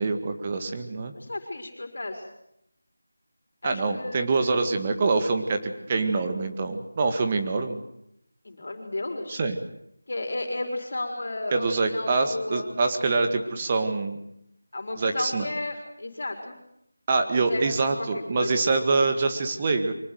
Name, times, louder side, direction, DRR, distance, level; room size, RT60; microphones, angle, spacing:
voice 1, 0.0-1.1 3.6-7.8 9.3-9.6 11.5-14.2 15.0-15.5 17.1-19.9, right 3 dB, 20° right, 6 dB, 1.9 m, -25 dB
voice 2, 1.1-2.2 3.6-4.3 8.4-9.4 10.1-12.7 14.7-16.6 17.3-17.6 18.0-18.7, left 2 dB, 55° left, 5 dB, 4.4 m, -33 dB
24.0 x 18.5 x 9.3 m, 0.77 s
figure-of-eight pair, 175°, 0 cm